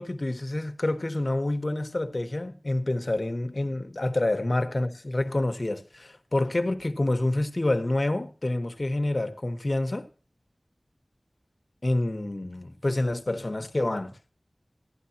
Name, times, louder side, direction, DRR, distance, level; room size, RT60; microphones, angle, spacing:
voice 1, 0.0-10.1 11.8-14.1, left 1 dB, 50° left, 1.2 m, -28 dB
15.5 x 11.5 x 2.8 m
wide cardioid pair, 60°, 0 cm